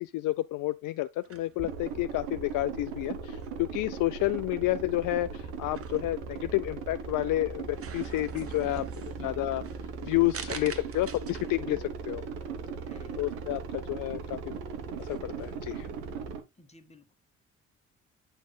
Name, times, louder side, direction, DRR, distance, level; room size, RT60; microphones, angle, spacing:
voice 1, 0.0-9.6 10.0-12.2 13.2-14.4 15.0-15.9, left 17 dB, 55° left, 0.5 m, -30 dB
sound 1, 1.2-16.1, right 6 dB, 35° right, 1.1 m, -49 dB
sound 2, 1.6-16.4, right 6 dB, 75° right, 1.2 m, -38 dB
voice 2, 8.6-9.4 10.7-10.9 12.8-13.2 16.6-17.1, left 2 dB, 15° left, 2.0 m, -57 dB
8.9 x 6.1 x 2.3 m
hypercardioid pair, 45°, 38 cm